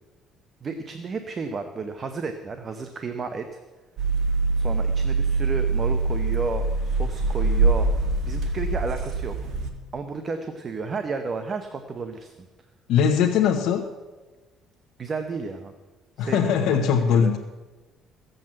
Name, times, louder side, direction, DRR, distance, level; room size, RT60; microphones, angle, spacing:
voice 1, 0.6-3.4 4.6-7.9 8.2-9.4 9.9-12.3 15.0-15.7 16.2-16.9 17.1-17.3, right 4 dB, 30° right, 7 dB, 0.8 m, -32 dB
sound 1, 4.0-9.7, right 3 dB, 55° right, 1.7 m, -24 dB
voice 2, 12.9-13.9 16.2-17.4, left 7 dB, 75° left, 1 dB, 0.9 m, -21 dB
15.0 x 7.9 x 7.5 m, 1.2 s
cardioid pair, 155°, 0 cm